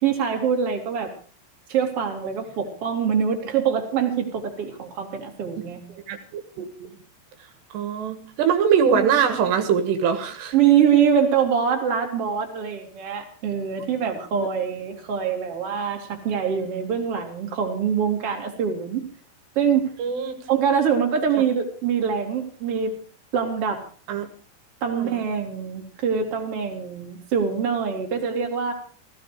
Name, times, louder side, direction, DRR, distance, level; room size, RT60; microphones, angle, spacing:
voice 1, 0.0-1.1 1.7-6.0 10.5-19.0 19.6-19.9 20.5-22.9 23.3-23.9 24.8-28.7, right 7 dB, 35° right, 2 dB, 3.4 m, -24 dB
voice 2, 7.7-10.5 14.4-14.5 20.0-20.4 24.1-24.3 24.9-25.2, right 7 dB, 80° right, 7 dB, 3.6 m, -22 dB
17.0 x 15.5 x 5.0 m, 0.42 s
omnidirectional pair, 5.0 m